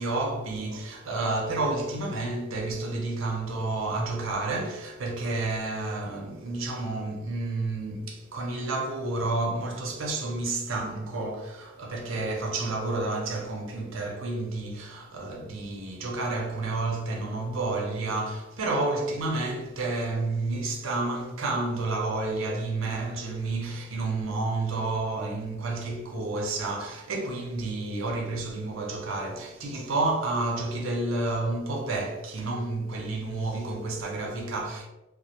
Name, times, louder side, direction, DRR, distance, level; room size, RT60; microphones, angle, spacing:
voice 1, 0.0-34.9, right 2 dB, 80° right, 0.6 m, -30 dB
2.3 x 2.1 x 2.8 m
head